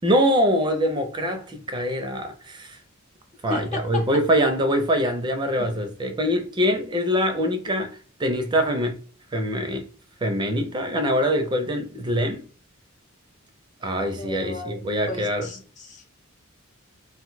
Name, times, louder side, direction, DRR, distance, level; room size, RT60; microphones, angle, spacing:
voice 1, 0.0-2.8 3.4-9.0 9.3-9.9 10.2-12.4 13.8-15.5, equal, 20° right, 0.4 m, -24 dB
voice 2, 3.5-4.1 5.6-5.7 14.1-14.8 15.1-16.1, left 3 dB, 35° left, 0.7 m, -34 dB
2.5 x 2.2 x 3.9 m
head